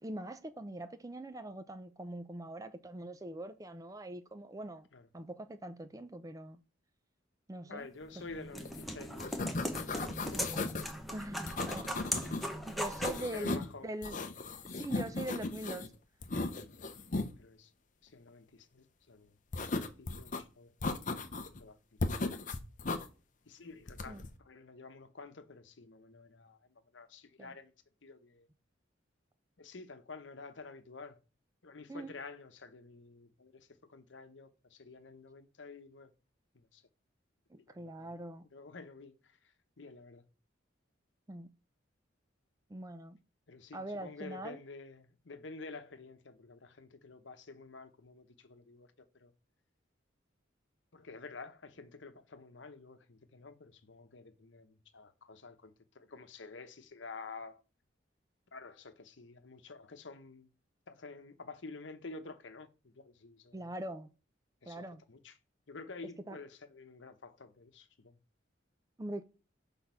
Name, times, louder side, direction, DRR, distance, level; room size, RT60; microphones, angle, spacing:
voice 1, 0.0-4.9 5.1-6.6 7.5-7.9 11.1-14.2 14.7-15.9 24.1-24.3 27.4-27.5 31.9-32.1 37.5-38.5 41.3-41.5 42.7-43.2 43.7-44.6 63.5-64.1 64.7-65.0 66.3-66.4 69.0-69.2, right 1 dB, 20° right, 0.4 m, -42 dB
voice 2, 7.7-10.0 10.3-10.5 13.0-13.9 17.4-17.7 18.0-19.4 19.6-21.2 21.6-22.4 23.5-27.7 28.0-28.5 29.6-31.2 31.6-36.1 36.5-36.8 37.7-38.1 38.5-40.3 43.5-49.3 50.9-57.6 58.5-60.5 60.9-63.6 64.6-65.3 65.7-68.2, left 3 dB, 75° left, 0.9 m, -50 dB
sound 1, 8.0-13.3, equal, ahead, 0.8 m, -39 dB
sound 2, 8.7-8.8 9.1-10.9 11.5-12.5 12.8-13.7 14.0-15.9 16.2-17.3 19.5-20.4 20.8-21.6 22.0-23.1 23.9-24.3, left 3 dB, 40° left, 0.6 m, -37 dB
6.1 x 3.6 x 5.6 m
head